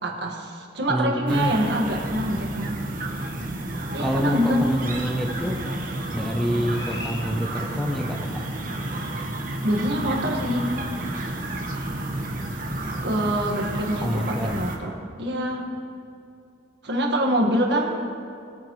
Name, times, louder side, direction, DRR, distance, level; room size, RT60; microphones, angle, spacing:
voice 1, 0.0-2.8 3.9-4.7 9.6-10.7 13.0-14.9 15.2-15.7 16.8-18.0, equal, 70° right, 0 dB, 1.7 m, -25 dB
voice 2, 0.9-1.5 4.0-5.7 6.1-8.3 14.0-14.6, equal, ahead, 1 dB, 0.8 m, -27 dB
sound 1, 1.3-14.8, right 1 dB, 45° right, 1.3 m, -31 dB
sound 2, 3.9-9.2, left 2 dB, 60° left, 1.5 m, -44 dB
21.0 x 9.2 x 3.2 m, 2.6 s
head